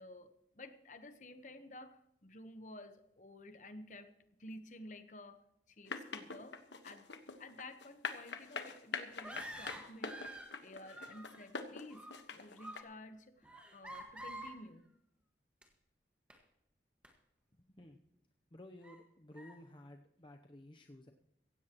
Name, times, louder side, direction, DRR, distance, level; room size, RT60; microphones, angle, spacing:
voice 1, 0.0-4.1 4.4-7.1 7.4-10.2 10.6-14.9, left 1 dB, 45° left, 9 dB, 1.1 m, -53 dB
sound 1, 5.9-12.8, left 5 dB, 80° left, 1.4 m, -43 dB
sound 2, 9.1-10.6 10.8-11.5 11.8-12.2 12.6-12.9 13.4-14.6 15.6-15.7 16.3-16.4 17.0-17.1 17.8-17.9 18.8-19.0 19.4-19.6, right 1 dB, 5° right, 1.6 m, -49 dB
voice 2, 18.5-21.1, left 1 dB, 25° left, 4 dB, 0.7 m, -54 dB
16.5 x 16.0 x 3.0 m, 0.82 s
head